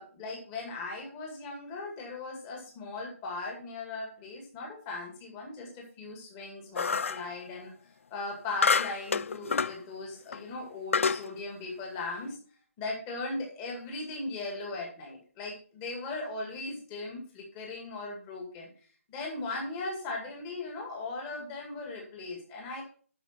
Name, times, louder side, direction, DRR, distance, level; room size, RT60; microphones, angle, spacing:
voice 1, 0.0-7.7 8.1-12.4 12.8-18.7 19.1-22.8, left 3 dB, 15° left, 0 dB, 2.2 m, -38 dB
sound 1, 6.8-7.3 8.6-9.8 10.3-10.4 10.9-11.3, left 5 dB, 60° left, 0.4 m, -27 dB
12.0 x 5.1 x 4.4 m, 0.42 s
hypercardioid pair, 170°, 8 cm